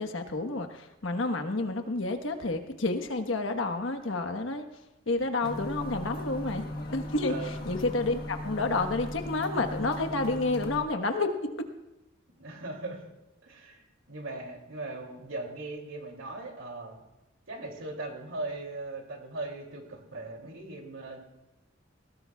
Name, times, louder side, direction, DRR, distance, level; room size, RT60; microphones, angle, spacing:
voice 1, 0.0-4.6 5.1-6.6 6.9-11.3, left 2 dB, 80° left, 6 dB, 1.3 m, -30 dB
sound 1, 5.4-10.8, left 1 dB, 55° left, 1.4 m, -37 dB
voice 2, 7.3-7.7 12.4-13.0 13.4-17.0 17.5-21.2, right 2 dB, 80° right, 2 dB, 2.8 m, -39 dB
19.5 x 17.5 x 2.4 m, 0.96 s
head